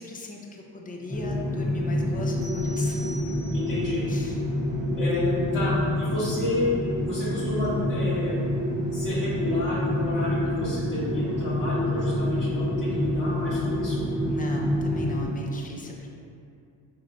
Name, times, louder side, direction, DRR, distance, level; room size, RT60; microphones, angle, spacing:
voice 1, 0.0-3.4 4.1-4.4 14.3-16.1, left 2 dB, 20° left, 0 dB, 0.4 m, -39 dB
sound 1, 1.1-15.3, left 1 dB, 10° right, 0.9 m, -27 dB
sound 2, 2.4-3.9, equal, 45° right, 0.9 m, -45 dB
voice 2, 3.5-4.0 5.0-6.6 7.0-8.3 8.9-14.0, left 1 dB, 60° left, -11 dB, 0.9 m, -30 dB
3.7 x 2.1 x 2.6 m, 2.5 s
supercardioid pair, 55°, 44 cm